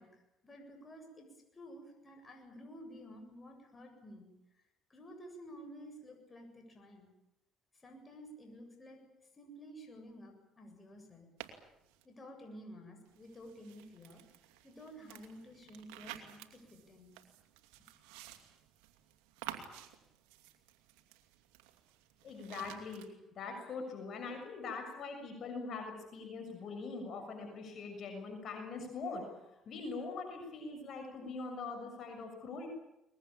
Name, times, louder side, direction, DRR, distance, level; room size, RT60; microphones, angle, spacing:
voice 1, 0.0-4.3 4.9-7.1 7.7-9.0 9.3-11.3 12.0-14.2 14.6-17.1 17.8-17.9, equal, 25° left, 4 dB, 7.9 m, -52 dB
sound 1, 11.4-12.0 13.1-23.1, right 12 dB, 90° right, 2.6 m, -52 dB
voice 2, 22.2-23.0 23.3-32.7, left 4 dB, 55° left, 3 dB, 6.8 m, -42 dB
23.0 x 21.0 x 8.9 m, 0.88 s
supercardioid pair, 75°, 0 cm